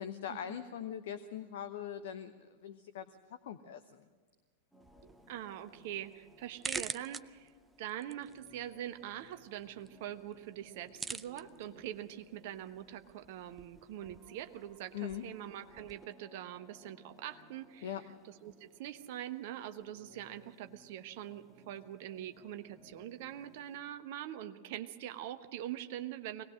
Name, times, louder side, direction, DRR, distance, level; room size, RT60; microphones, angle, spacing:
voice 1, 0.0-4.1 14.9-15.2 17.8-18.0, left 9 dB, 55° left, 10 dB, 0.8 m, -42 dB
sound 1, 4.7-23.8, left 1 dB, 5° left, 2.2 m, -63 dB
sound 2, 4.8-16.0, right 4 dB, 15° right, 0.6 m, -48 dB
voice 2, 5.0-7.5 7.8-18.0 18.2-26.4, right 12 dB, 50° right, 9 dB, 1.1 m, -43 dB
22.5 x 19.0 x 6.5 m, 1.4 s
figure-of-eight pair, 90°, 0 cm